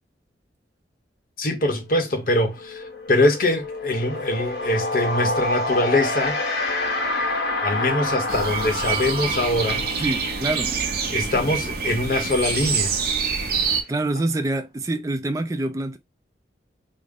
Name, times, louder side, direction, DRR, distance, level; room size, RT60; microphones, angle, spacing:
voice 1, 1.4-6.4 7.6-9.9 11.1-12.9, left 1 dB, 50° left, 0.8 m, -23 dB
sound 1, 1.9-2.1 2.4-12.9, left 2 dB, 85° left, 1.2 m, -28 dB
sound 2, 8.3-13.8, right 5 dB, 55° right, 0.8 m, -26 dB
voice 2, 10.0-10.7 13.9-16.0, right 2 dB, 15° right, 0.4 m, -26 dB
3.6 x 2.0 x 3.6 m
head